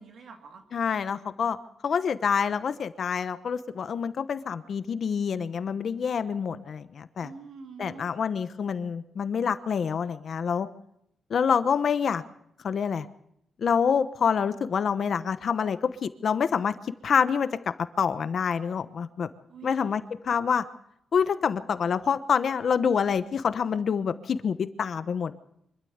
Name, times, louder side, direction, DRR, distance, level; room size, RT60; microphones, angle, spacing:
voice 1, 0.0-0.6 7.2-8.1 19.5-20.0, right 5 dB, 60° right, 4 dB, 2.9 m, -45 dB
voice 2, 0.7-1.6 1.8-7.3 7.8-10.7 11.3-12.2 12.6-13.1 13.6-17.5 18.0-19.3 19.6-20.6 21.1-25.3, left 6 dB, 50° left, 12 dB, 1.0 m, -27 dB
25.0 x 13.0 x 8.0 m, 0.76 s
wide cardioid pair, 140°, 0 cm